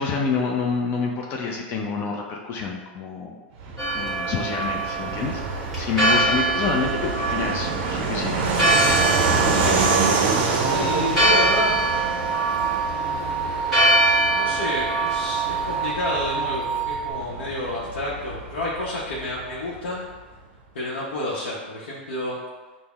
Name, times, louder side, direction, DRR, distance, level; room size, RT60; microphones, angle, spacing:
voice 1, 0.0-3.4 3.9-9.0 9.4-9.9, left 4 dB, 40° left, 0 dB, 0.4 m, -28 dB
Fixed-wing aircraft airplane, 3.6-19.8, right 4 dB, 55° right, 0.5 m, -27 dB
Church bell, 3.8-15.9, right 2 dB, ahead, 1.4 m, -24 dB
voice 2, 9.5-9.9 10.7-11.8 12.9-13.5 14.3-20.1 20.7-22.4, left 1 dB, 85° left, -6 dB, 0.7 m, -30 dB
sound 1, 10.6-17.1, right 7 dB, 25° right, 1.1 m, -28 dB
5.3 x 2.0 x 2.3 m, 1.3 s
hypercardioid pair, 125°, 6 cm